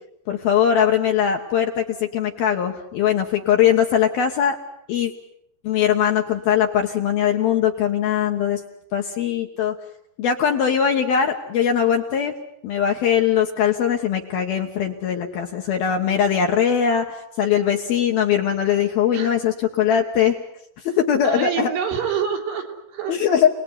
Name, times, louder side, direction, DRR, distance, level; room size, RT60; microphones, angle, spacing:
voice 1, 0.3-4.6 4.9-5.1 5.6-8.6 8.9-9.8 10.2-12.3 12.6-20.4 20.8-21.7 23.1-23.5, left 8 dB, 65° left, 3 dB, 2.7 m, -21 dB
voice 2, 21.2-23.2, right 7 dB, 70° right, 3 dB, 5.8 m, -27 dB
29.5 x 20.0 x 9.9 m, 0.77 s
omnidirectional pair, 5.9 m